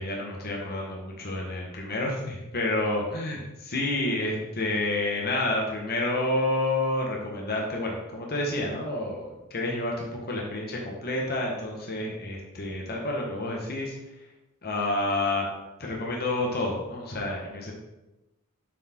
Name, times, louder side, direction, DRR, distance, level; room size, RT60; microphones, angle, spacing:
voice 1, 0.0-13.9 14.6-15.5 15.8-17.7, left 2 dB, 45° left, -1 dB, 1.4 m, -29 dB
7.5 x 4.6 x 4.5 m, 0.99 s
head